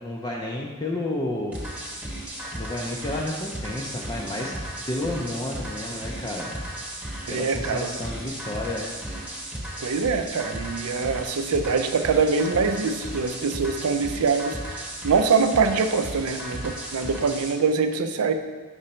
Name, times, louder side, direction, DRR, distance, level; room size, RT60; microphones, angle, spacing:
voice 1, 0.0-1.6 2.5-4.5 4.9-6.5 7.3-8.9, left 1 dB, 20° left, -2 dB, 0.5 m, -31 dB
sound 1, 1.5-17.5, right 1 dB, 5° right, 1.0 m, -35 dB
voice 2, 7.3-7.9 9.8-18.3, right 5 dB, 80° right, 8 dB, 0.5 m, -24 dB
5.3 x 5.0 x 4.3 m, 1.4 s
head